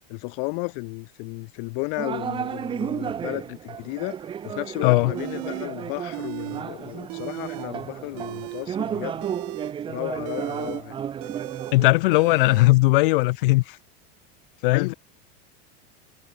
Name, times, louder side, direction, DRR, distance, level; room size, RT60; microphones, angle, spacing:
voice 1, 0.1-4.2 4.4-9.2 9.9-11.0 14.7-14.9, left 40 dB or more, 40° left, 1.8 m, -33 dB
sound 1, 2.0-11.9, right 8 dB, 15° right, 1.9 m, -33 dB
voice 2, 4.8-5.1 11.7-13.8 14.6-14.9, left 21 dB, 60° left, 0.5 m, -18 dB
sound 2, 5.2-5.7 6.1-6.6 6.9-7.7 8.1-12.7, right 30 dB, 40° right, 0.7 m, -37 dB
supercardioid pair, 180°, 30 cm